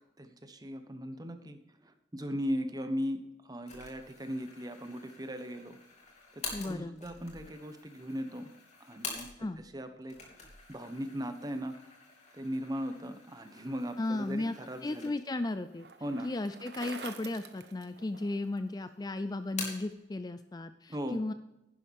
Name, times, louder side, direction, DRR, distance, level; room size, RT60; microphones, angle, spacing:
voice 1, 0.2-5.8 6.3-8.5 8.8-9.3 9.6-10.2 10.7-11.7 12.3-15.1 16.0-16.3 20.9-21.2, equal, 20° right, 7 dB, 1.1 m, -38 dB
sound 1, 3.7-9.7 10.0-15.5 15.9-16.0 16.8-17.5 17.8-18.6 18.9-20.0, left 4 dB, 40° left, 3.0 m, -47 dB
voice 2, 6.5-7.0 9.4-9.6 14.0-14.5 14.8-15.9 16.2-21.3, left 2 dB, 20° left, 11 dB, 0.4 m, -35 dB
Bicycle, 14.2-18.6, right 5 dB, 65° right, 1.1 m, -48 dB
11.5 x 10.5 x 3.6 m, 0.89 s
head